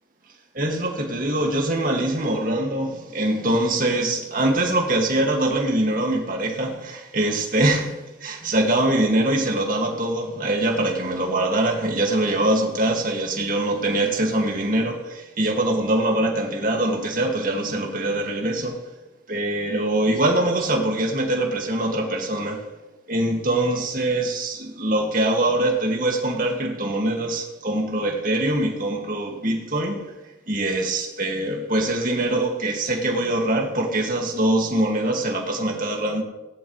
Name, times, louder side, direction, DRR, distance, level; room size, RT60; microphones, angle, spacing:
voice 1, 0.5-18.9 19.3-22.7 23.1-30.1 30.5-36.2, right 1 dB, 45° right, 2.3 m, -23 dB
19.0 x 11.0 x 3.3 m
head